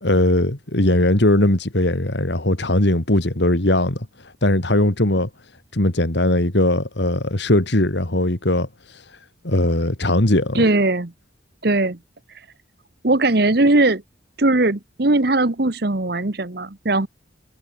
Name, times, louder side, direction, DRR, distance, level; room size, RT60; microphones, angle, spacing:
voice 1, 0.0-5.3 5.7-9.1 9.4-10.6, left 1 dB, 65° left, 2.4 m, -19 dB
voice 2, 10.5-11.1 11.6-12.0 13.0-14.0 14.4-17.1, right 2 dB, 55° right, 1.2 m, -19 dB
head